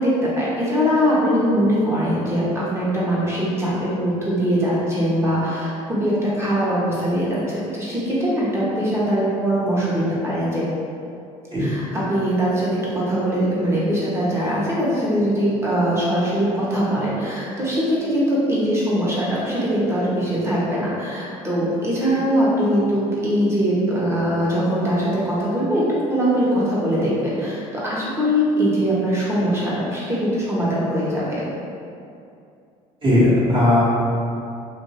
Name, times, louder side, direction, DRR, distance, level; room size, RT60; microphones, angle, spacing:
voice 1, 0.0-10.6 11.6-25.8 26.1-31.4, equal, 20° right, -7 dB, 1.0 m, -21 dB
voice 2, 33.0-33.8, left 1 dB, 35° right, -9 dB, 1.3 m, -17 dB
3.1 x 2.6 x 2.9 m, 2.5 s
cardioid pair, 110°, 15 cm